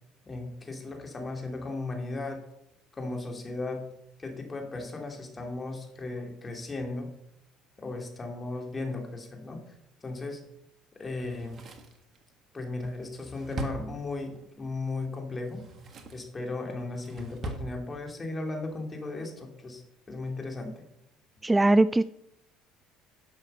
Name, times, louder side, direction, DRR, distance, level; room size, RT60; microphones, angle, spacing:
voice 1, 0.3-2.4 3.0-3.9 4.2-7.1 7.8-9.6 10.0-10.4 11.0-11.6 12.5-15.6 16.1-19.8 20.1-20.8, left 2 dB, 25° left, 2 dB, 2.8 m, -36 dB
Drawer open or close, 11.2-14.5 15.4-16.3 16.7-17.7 18.0-18.1, right 2 dB, 45° right, 1.7 m, -41 dB
voice 2, 21.4-22.0, right 2 dB, 15° right, 16 dB, 0.3 m, -20 dB
11.0 x 6.4 x 5.5 m, 0.80 s
hypercardioid pair, 70°, 0 cm